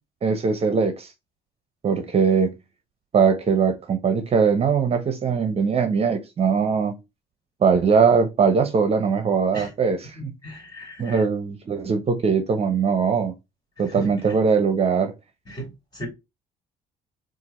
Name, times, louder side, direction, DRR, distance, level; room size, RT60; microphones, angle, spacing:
voice 1, 0.2-1.1 1.8-2.5 3.1-7.0 7.6-10.3 11.0-13.3 13.8-15.1, right 5 dB, 35° right, 0.7 m, -21 dB
voice 2, 10.2-11.2 13.9-14.1 15.5-16.1, right 1 dB, 25° left, 2.4 m, -36 dB
4.5 x 2.5 x 4.1 m
cardioid pair, 110°, 17 cm